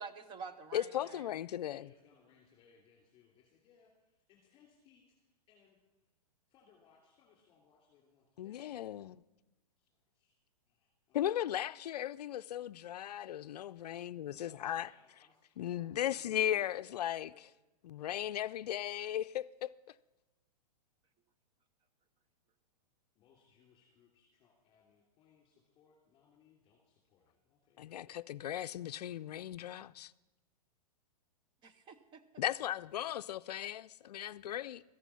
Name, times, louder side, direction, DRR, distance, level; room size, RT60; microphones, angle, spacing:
voice 1, 0.0-1.4 31.6-32.4, right 5 dB, 25° right, 0.8 m, -48 dB
voice 2, 0.7-1.9 8.4-9.2 11.1-14.9 15.6-17.3 17.8-19.7 27.8-30.1 32.4-34.8, left 11 dB, 80° left, 0.4 m, -37 dB
voice 3, 1.7-6.1 6.5-8.8 9.8-10.4 10.7-11.2 14.3-17.4 23.1-28.0 34.3-34.5, left 7 dB, 25° left, 2.9 m, -67 dB
13.5 x 11.0 x 5.7 m
hypercardioid pair, 135°, 20 cm